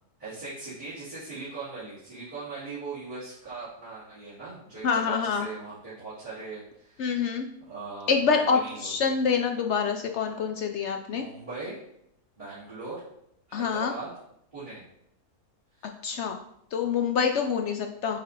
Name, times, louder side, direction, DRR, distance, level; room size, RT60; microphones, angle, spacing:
voice 1, 0.2-7.2 7.6-8.2 8.6-9.1 11.1-11.8 12.4-13.0 13.5-14.1 14.5-14.8 15.8-15.9, right 3 dB, 30° right, -12 dB, 2.9 m, -40 dB
voice 2, 4.8-5.5 7.0-7.5 8.1-11.2 13.5-13.9 16.0-16.4 16.7-18.2, left 6 dB, 75° left, 4 dB, 0.6 m, -26 dB
9.0 x 3.4 x 4.0 m, 0.75 s
omnidirectional pair, 1.7 m